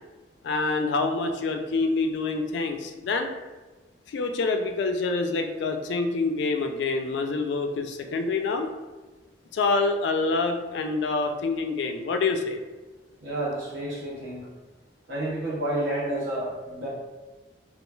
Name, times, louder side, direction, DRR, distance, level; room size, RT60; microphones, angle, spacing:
voice 1, 0.4-3.3 4.1-8.7 9.5-12.6, left 3 dB, 70° left, 5 dB, 0.3 m, -26 dB
voice 2, 13.2-14.5 15.1-16.9, right 1 dB, 80° right, -6 dB, 0.8 m, -30 dB
3.0 x 2.3 x 2.2 m, 1.2 s
head